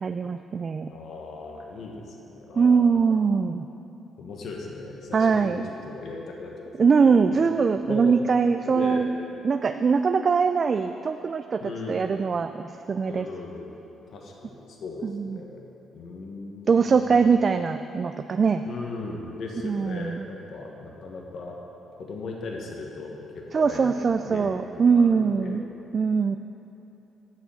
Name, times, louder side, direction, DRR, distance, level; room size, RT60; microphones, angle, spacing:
voice 1, 0.0-0.9 2.6-3.7 5.1-5.6 6.8-9.1 9.4-11.6 11.9-13.3 15.0-15.4 16.7-18.6 19.6-20.3 23.5-25.6 25.9-26.4, right 5 dB, 40° right, 8 dB, 0.3 m, -22 dB
voice 2, 0.9-3.2 4.2-6.7 7.0-7.2 7.9-8.2 8.7-9.1 11.6-12.1 13.1-13.7 14.1-15.6 15.9-17.2 18.7-21.6 22.0-24.0 24.2-24.5 24.9-25.6, left 3 dB, 65° left, 0 dB, 1.3 m, -37 dB
8.2 x 6.9 x 7.5 m, 3.0 s
cardioid pair, 90°, 0 cm